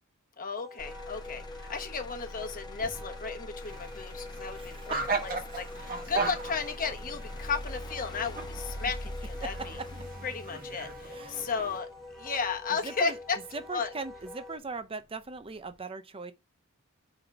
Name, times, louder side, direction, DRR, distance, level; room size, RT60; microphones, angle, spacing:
voice 1, 0.4-4.9 5.2-9.8 10.2-11.9 12.1-13.4 13.7-13.9, left 5 dB, 40° left, 1.1 m, -34 dB
Wind instrument woodwind instrument, 0.6-14.6, left 2 dB, ahead, 1.0 m, -46 dB
Motor vehicle (road), 0.8-14.8 15.3-15.8, left 1 dB, 20° left, 0.7 m, -44 dB
sound 1, 3.6-11.8, right 4 dB, 40° right, 1.4 m, -38 dB
voice 2, 4.6-5.2 9.4-9.7 11.1-11.5 12.8-13.2 13.5-16.3, right 4 dB, 25° right, 0.7 m, -39 dB
5.1 x 4.0 x 5.8 m
head